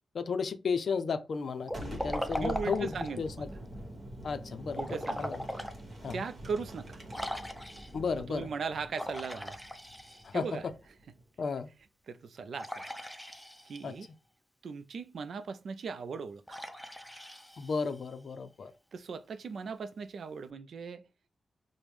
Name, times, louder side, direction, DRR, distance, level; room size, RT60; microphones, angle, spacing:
voice 1, 0.1-3.5 4.2-4.8 5.2-5.4 6.0-6.2 7.9-8.5 10.2-10.4 11.4-11.7 13.8-13.9 17.6-18.7, left 5 dB, 65° left, 0.4 m, -33 dB
Liquid, 1.6-3.3 4.7-5.8 6.3-6.4 7.1-8.1 8.9-10.5 12.6-13.9 16.5-18.1, equal, ahead, 0.5 m, -39 dB
Boom, 1.7-11.3, right 1 dB, 50° right, 1.2 m, -45 dB
voice 2, 2.4-3.5 4.8-5.3 6.1-7.0 8.3-9.6 10.1-10.7 12.1-12.9 13.7-14.1 14.6-16.6 18.9-21.1, right 5 dB, 75° right, 0.3 m, -38 dB
5.1 x 2.1 x 3.1 m
wide cardioid pair, 105°, 0 cm